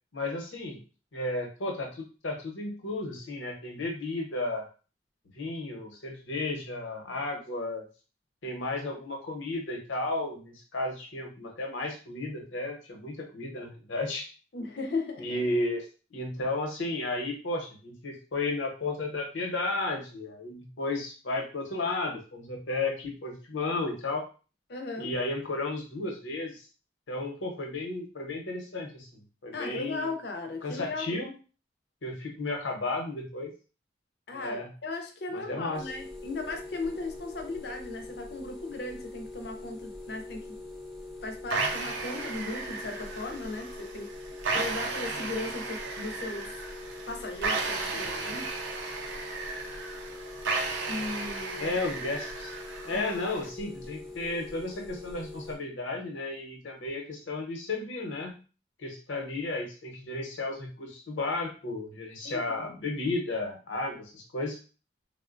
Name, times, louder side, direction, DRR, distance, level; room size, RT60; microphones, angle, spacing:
voice 1, 0.1-0.8 1.1-4.7 5.3-7.8 8.4-14.3 15.2-15.8 16.1-24.3 25.0-26.7 27.1-30.1 30.6-31.3 32.0-33.5 34.3-34.7 35.3-35.9 47.9-48.3 51.6-52.5 52.8-58.4 58.8-64.6, left 2 dB, 90° left, 1 dB, 0.8 m, -33 dB
voice 2, 14.5-15.4 24.7-25.1 29.5-31.2 34.3-40.5 41.2-44.1 44.5-46.5 47.1-48.5 50.9-51.8 52.9-53.1 62.2-62.4, left 3 dB, 60° left, 4 dB, 0.5 m, -37 dB
sound 1, 35.7-55.6, left 2 dB, ahead, 0.4 m, -43 dB
sound 2, 41.5-53.5, right 3 dB, 80° right, 0.5 m, -35 dB
3.5 x 2.1 x 2.5 m, 0.35 s
head